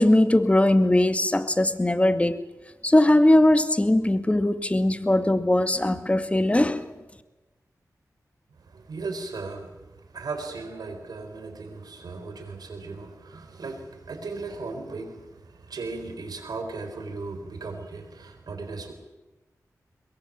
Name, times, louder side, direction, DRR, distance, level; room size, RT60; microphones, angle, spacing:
voice 1, 0.0-2.4 2.8-6.9, left 1 dB, 20° left, 2.0 m, -20 dB
voice 2, 8.7-9.7 10.1-18.9, right 3 dB, 80° right, 4.4 m, -36 dB
22.5 x 22.5 x 7.5 m
cardioid pair, 55°, 7 cm